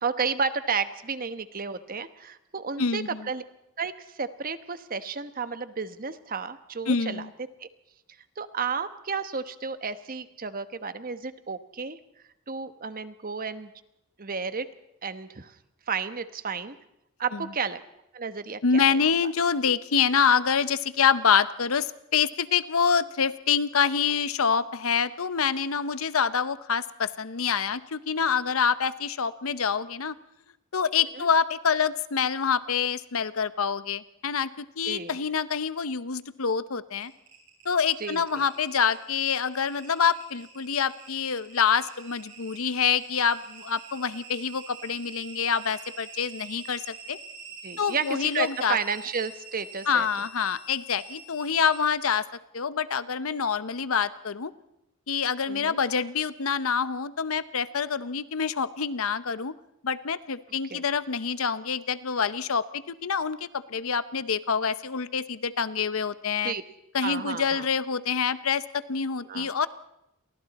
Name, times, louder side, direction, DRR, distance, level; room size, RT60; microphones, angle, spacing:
voice 1, 0.0-3.4 3.8-7.2 7.6-7.7 8.4-12.0 12.5-13.7 14.2-14.7 15.0-15.5 15.9-16.7 17.2-17.8 18.1-19.0 31.2-31.3 34.8-35.2 38.0-38.5 47.6-50.1 55.5-55.8 60.7-60.8 66.4-66.6 67.0-67.6 69.3-69.5, right 5 dB, 40° right, 11 dB, 1.1 m, -32 dB
voice 2, 2.8-3.3 6.9-7.3 17.3-17.5 18.6-30.1 30.7-37.1 37.6-46.8 47.1-47.2 47.8-48.8 49.9-52.2 52.5-54.5 55.1-59.5 59.8-66.5 66.9-69.7, left 6 dB, 75° left, 15 dB, 0.8 m, -26 dB
sound 1, 37.0-51.9, right 4 dB, 55° right, 8.0 m, -46 dB
30.0 x 23.5 x 4.2 m, 0.84 s
head